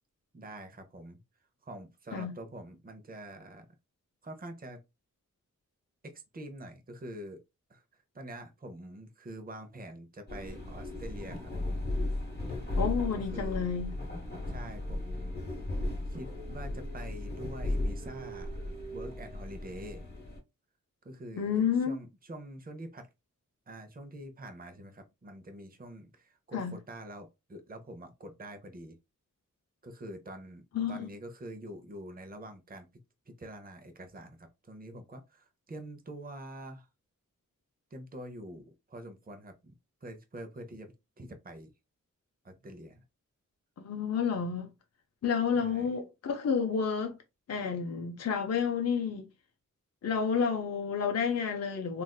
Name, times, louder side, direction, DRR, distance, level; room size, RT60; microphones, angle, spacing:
voice 1, 0.3-1.2 1.6-3.7 4.2-4.8 6.0-7.4 7.7-11.5 12.4-12.5 13.1-13.7 14.5-15.4 16.1-20.1 21.0-23.1 23.7-29.0 29.8-30.6 30.9-32.9 33.3-36.9 37.9-39.7 40.0-41.7 42.4-43.0 45.5-45.9, right 1 dB, 30° right, 0.6 m, -46 dB
sound 1, 10.3-20.4, left 1 dB, 30° left, 1.1 m, -36 dB
voice 2, 12.8-13.9 21.4-22.0 26.5-26.8 30.7-31.1 43.8-44.7 45.2-47.2 47.5-49.3 50.0-52.0, left 6 dB, 55° left, 0.5 m, -30 dB
3.3 x 2.4 x 2.2 m
wide cardioid pair, 100°, 31 cm